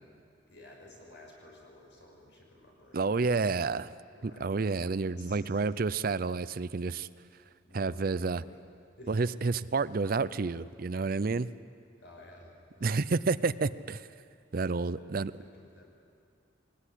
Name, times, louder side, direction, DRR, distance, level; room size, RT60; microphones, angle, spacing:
voice 1, 0.5-3.2 4.1-5.6 7.6-8.6 9.0-9.2 12.0-13.2 14.9-15.9, left 1 dB, 65° left, 0 dB, 5.8 m, -54 dB
voice 2, 2.9-3.9 4.2-7.1 7.7-8.4 9.1-11.5 12.8-14.1 14.5-15.3, right 4 dB, 50° right, 16 dB, 0.5 m, -30 dB
22.5 x 20.0 x 10.0 m, 2.3 s
head